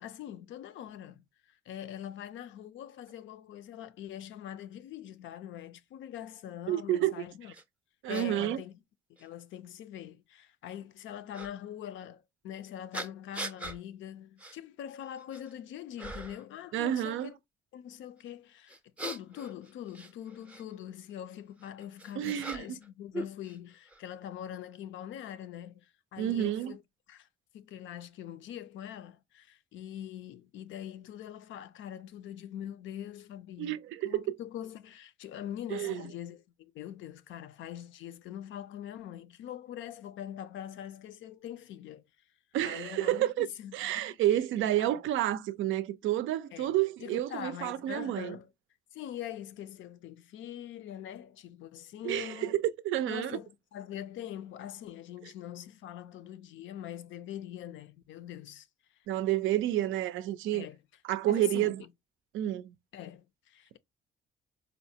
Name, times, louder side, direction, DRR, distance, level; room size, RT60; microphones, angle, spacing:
voice 1, 0.0-7.5 8.1-8.8 9.2-17.3 17.7-26.8 27.1-27.3 27.5-33.8 34.0-42.0 42.6-44.1 44.8-45.0 46.5-46.8 47.0-48.5 48.9-52.6 53.1-58.7 60.5-60.8 61.3-61.9 62.9-63.8, left 10 dB, 75° left, 0.4 m, -43 dB
voice 2, 6.7-7.1 8.0-8.6 16.7-17.3 22.2-22.7 26.2-26.7 33.6-34.4 35.7-36.0 42.5-43.5 43.7-48.3 52.0-53.4 59.1-60.7 61.0-61.8 62.3-62.7, right 13 dB, 80° right, 0.4 m, -30 dB
sound 1, 7.5-7.6 8.1-8.3 9.2-9.3 11.3-11.5 12.9-13.8 14.4-14.6 15.0-15.5 16.0-16.5 18.7-20.6 21.6-22.9 23.1-24.0, right 2 dB, 5° right, 0.5 m, -41 dB
4.2 x 2.1 x 2.7 m
cardioid pair, 90°, 20 cm